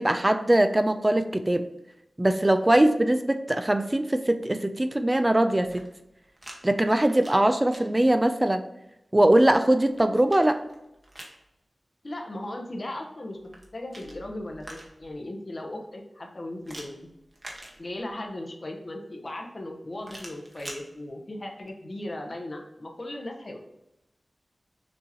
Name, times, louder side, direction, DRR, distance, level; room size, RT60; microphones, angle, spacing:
voice 1, 0.0-1.6 2.2-5.8 6.6-8.6 9.1-10.6, right 1 dB, 25° right, 9 dB, 0.3 m, -21 dB
sound 1, 5.5-6.6 6.9-7.8 9.5-11.4 13.4-15.1 16.6-18.2 20.0-20.8, right 1 dB, 40° right, 1.2 m, -45 dB
voice 2, 12.0-17.0 17.8-23.6, left 1 dB, 50° left, 2 dB, 0.8 m, -37 dB
6.2 x 2.9 x 2.8 m, 0.90 s
cardioid pair, 45°, 0 cm